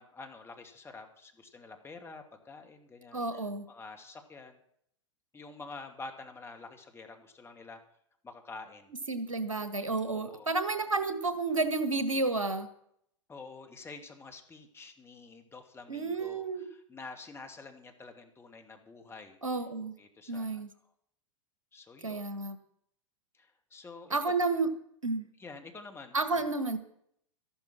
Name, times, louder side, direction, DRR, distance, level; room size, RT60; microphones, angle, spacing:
voice 1, 0.0-4.6 5.3-7.8 8.2-8.9 10.1-10.5 13.3-19.4 20.0-20.6 21.7-22.3 23.3-24.4 25.4-26.5, left 3 dB, 15° left, 5 dB, 2.4 m, -48 dB
voice 2, 3.1-3.6 9.1-12.7 15.9-16.6 19.4-19.9 20.3-20.7 22.0-22.6 24.1-24.7 25.0-25.3 26.1-26.8, right 3 dB, 85° right, 11 dB, 1.6 m, -31 dB
13.5 x 12.0 x 6.1 m, 0.68 s
figure-of-eight pair, 100°, 16 cm